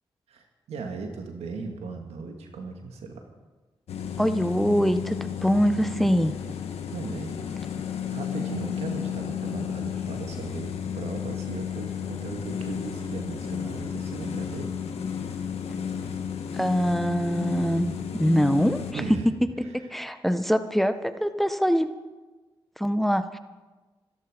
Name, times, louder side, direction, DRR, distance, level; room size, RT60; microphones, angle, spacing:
voice 1, 0.3-3.2 6.9-7.3 8.1-14.7 15.2-15.4 18.9-19.3, right 4 dB, 90° right, 3 dB, 2.1 m, -37 dB
sound 1, 3.9-18.9, left 8 dB, 85° left, 1.5 m, -33 dB
voice 2, 4.2-6.3 16.5-17.9 18.2-19.0 19.7-21.9 22.8-23.4, equal, ahead, 10 dB, 1.3 m, -24 dB
25.0 x 10.5 x 5.2 m, 1.2 s
supercardioid pair, 40°, 10 cm